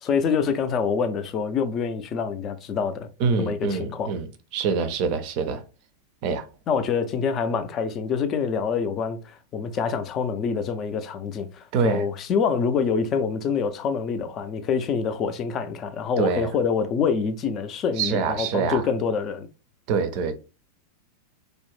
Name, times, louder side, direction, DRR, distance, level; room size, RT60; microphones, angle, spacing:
voice 1, 0.0-3.1 3.4-4.1 6.7-19.5, left 6 dB, 30° left, 0.4 m, -26 dB
voice 2, 3.2-4.3 4.5-5.6 6.2-6.4 11.7-12.0 16.2-16.5 18.0-18.8 19.9-20.3, right 5 dB, 45° right, 0.4 m, -25 dB
2.4 x 2.0 x 3.1 m
figure-of-eight pair, 90°, 0 cm